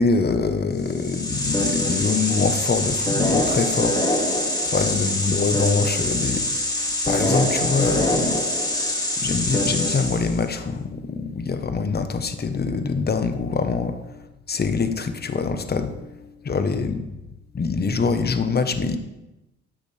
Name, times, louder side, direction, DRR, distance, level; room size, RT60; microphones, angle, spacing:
voice 1, 0.0-8.8 9.2-17.1 17.5-19.0, left 4 dB, 30° left, 9 dB, 1.0 m, -24 dB
sound 1, 0.8-10.4, left 1 dB, 15° left, 2.0 m, -24 dB
12.5 x 8.1 x 3.3 m, 0.99 s
cardioid pair, 90°, 30 cm